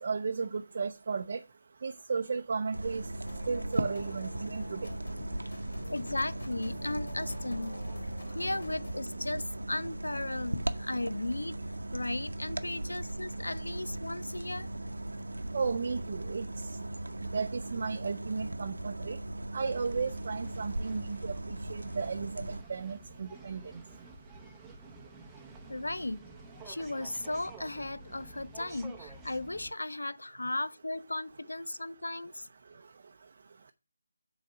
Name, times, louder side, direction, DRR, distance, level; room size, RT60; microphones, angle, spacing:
voice 1, 0.0-1.4 1.8-3.0 3.5-4.8 15.5-16.4 17.2-19.2 19.5-23.6, right 5 dB, 45° right, 0.5 m, -34 dB
sound 1, 2.7-22.6, right 1 dB, 90° right, 0.8 m, -38 dB
sound 2, 3.2-9.0, left 2 dB, 55° left, 2.9 m, -45 dB
voice 2, 5.9-7.8 8.3-11.5 11.9-14.7 25.7-26.2 26.7-32.5, left 2 dB, 85° left, 0.6 m, -36 dB
sound 3, 19.6-29.7, right 3 dB, 5° right, 0.8 m, -51 dB
6.7 x 4.0 x 6.2 m
figure-of-eight pair, 160°, 0 cm